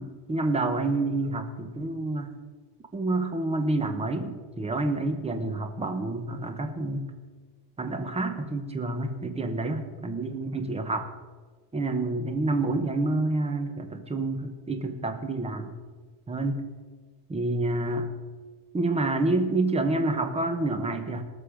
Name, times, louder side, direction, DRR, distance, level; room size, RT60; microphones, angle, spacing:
voice 1, 0.0-2.3 2.9-7.1 7.8-11.1 11.7-15.7 16.3-16.6 17.3-18.1 18.7-21.2, right 2 dB, 15° right, 7 dB, 1.1 m, -28 dB
19.0 x 6.7 x 5.1 m, 1.4 s
cardioid pair, 145°, 48 cm